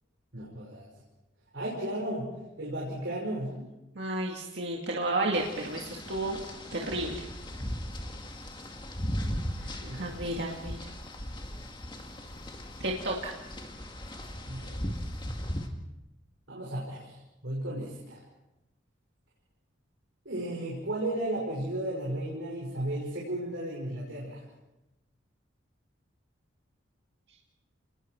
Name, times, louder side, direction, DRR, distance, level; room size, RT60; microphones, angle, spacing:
voice 1, 0.3-0.8 1.5-2.3 2.6-3.6 9.8-10.1 14.5-14.7 16.5-17.1 17.4-18.2 20.2-24.4, right 1 dB, 75° right, -4 dB, 5.8 m, -34 dB
voice 2, 4.0-6.4 6.7-7.2 9.6-10.8 12.8-13.3, right 2 dB, 60° right, -1 dB, 2.2 m, -32 dB
sound 1, 5.3-15.7, equal, 25° left, 2.1 m, -38 dB
29.5 x 20.5 x 4.6 m, 0.98 s
head